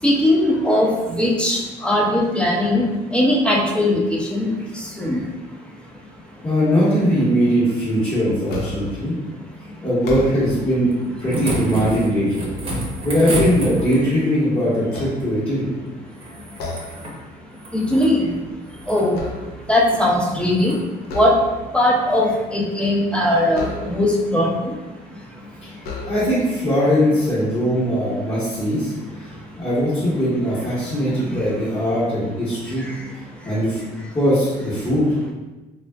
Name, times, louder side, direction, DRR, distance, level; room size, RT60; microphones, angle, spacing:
voice 1, 0.0-0.9 1.2-2.8 3.1-4.5 5.0-5.2 17.7-18.2 18.9-19.2 19.7-20.8 21.1-21.3 21.7-24.5, left 1 dB, 5° left, -2 dB, 0.4 m, -19 dB
voice 2, 6.4-9.2 9.8-10.9 11.2-12.5 13.0-15.7 25.6-25.7 26.1-29.3 29.6-32.8 33.4-33.8 34.1-35.1, equal, 30° left, -12 dB, 1.1 m, -20 dB
sound 1, 8.5-9.0 9.9-10.7 11.2-12.3 12.8-14.3 14.8-15.8 16.6-17.1 17.5-17.7 18.1-19.8 21.0-21.8 23.5-24.3 25.1-25.2 25.8-26.6, left 2 dB, 70° left, 0.6 m, -33 dB
sound 2, 10.9-14.2 16.1-17.2 17.5-18.1 18.7-19.1 19.8-20.0 20.5-20.8 22.2-22.3, right 1 dB, 35° right, 0.7 m, -29 dB
3.4 x 2.4 x 2.2 m, 1.2 s
cardioid pair, 110°, 17 cm